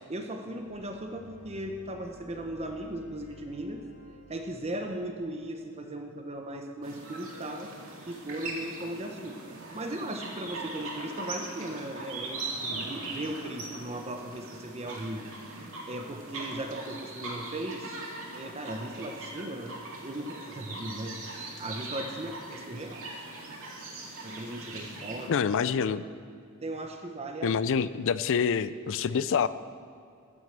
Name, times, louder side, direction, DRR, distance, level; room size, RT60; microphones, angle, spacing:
voice 1, 0.1-3.8 4.3-7.7 8.1-9.4 9.7-15.2 15.5-17.9 18.3-23.1 24.2-25.3 25.9-26.1 26.6-27.5, right 1 dB, 30° right, 4 dB, 0.8 m, -37 dB
Cathedral Organ, 0.6-5.7, left 1 dB, 85° left, 1.6 m, -54 dB
sound 1, 6.8-25.3, right 2 dB, 65° right, 2.3 m, -40 dB
voice 2, 25.3-26.0 27.4-29.5, left 6 dB, 60° left, 15 dB, 0.4 m, -26 dB
14.5 x 6.3 x 7.4 m, 2.4 s
head